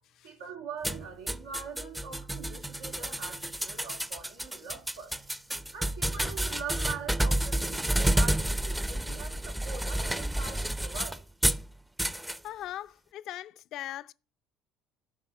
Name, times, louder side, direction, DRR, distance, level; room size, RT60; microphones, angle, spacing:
voice 1, 0.2-11.2, right 5 dB, 85° right, 2.5 m, -43 dB
sound 1, 0.8-11.6 12.0-12.4, right 1 dB, 5° right, 0.6 m, -30 dB
voice 2, 12.4-14.1, left 13 dB, 60° left, 0.5 m, -40 dB
11.0 x 5.5 x 7.1 m
hypercardioid pair, 65°, 0 cm